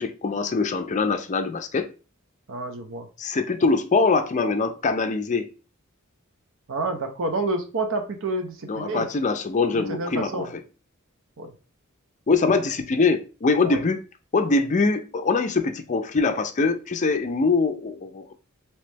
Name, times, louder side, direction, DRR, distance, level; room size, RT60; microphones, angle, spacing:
voice 1, 0.0-1.9 3.2-5.5 8.7-10.5 12.3-14.0 14.3-18.3, left 4 dB, 35° left, 0.5 m, -23 dB
voice 2, 2.5-3.1 6.7-9.1 9.7-10.5 11.4-11.5 13.6-13.8, right 2 dB, 65° right, 0.7 m, -29 dB
3.1 x 2.9 x 3.3 m
head